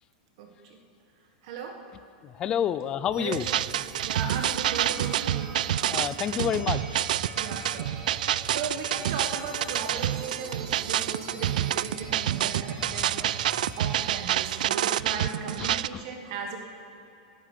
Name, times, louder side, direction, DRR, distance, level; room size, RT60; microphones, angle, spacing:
voice 1, 0.4-0.8 1.4-1.8 2.7-2.8 3.2-3.4 4.0-5.5 7.3-16.6, right 5 dB, 45° right, 3 dB, 1.6 m, -37 dB
voice 2, 2.2-3.5 5.9-7.0 12.9-13.0 15.6-16.0, left 9 dB, 20° left, 15 dB, 0.4 m, -29 dB
sound 1, 3.1-14.7, right 2 dB, 15° right, 1.9 m, -43 dB
sound 2, 3.3-15.9, right 12 dB, 75° right, 0.3 m, -28 dB
19.0 x 10.0 x 6.7 m, 2.9 s
supercardioid pair, 170°, 4 cm